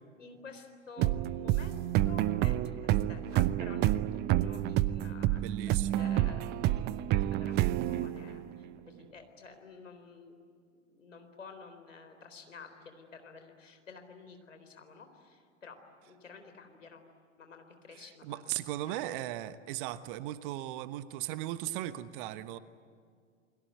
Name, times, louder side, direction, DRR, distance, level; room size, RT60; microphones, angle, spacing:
voice 1, 0.2-6.5 6.8-10.4 11.0-17.0 17.4-18.4 18.7-19.1, left 4 dB, 75° left, 7 dB, 4.0 m, -51 dB
sound 1, 1.0-8.6, right 13 dB, 25° right, 0.7 m, -29 dB
voice 2, 5.4-6.1 17.9-22.6, right 14 dB, 45° right, 14 dB, 1.2 m, -37 dB
29.5 x 22.0 x 9.2 m, 2.1 s
figure-of-eight pair, 95°, 38 cm